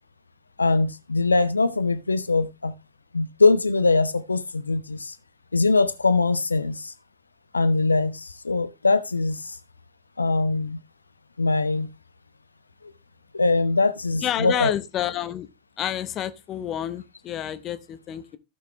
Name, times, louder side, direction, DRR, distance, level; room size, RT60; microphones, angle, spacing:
voice 1, 0.6-2.7 3.1-5.2 5.5-6.9 7.5-9.6 10.2-10.8 11.4-11.9 13.3-14.7, left 3 dB, 80° left, 0.5 m, -22 dB
voice 2, 14.2-15.5 15.8-18.4, left 11 dB, 30° left, 0.9 m, -29 dB
15.5 x 5.8 x 3.0 m
figure-of-eight pair, 90°, 0 cm